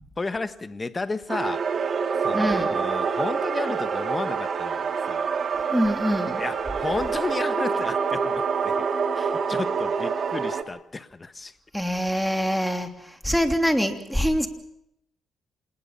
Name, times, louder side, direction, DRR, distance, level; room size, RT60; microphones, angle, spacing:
voice 1, 0.2-1.6 2.2-5.3 6.4-8.9 9.1-11.6, left 3 dB, 25° left, 12 dB, 1.6 m, -32 dB
sound 1, 1.3-10.6, right 5 dB, 50° right, 2.3 m, -26 dB
voice 2, 2.3-2.7 5.7-6.4 11.7-14.5, equal, ahead, 7 dB, 3.1 m, -24 dB
27.0 x 20.0 x 5.8 m, 0.76 s
cardioid pair, 90°, 0 cm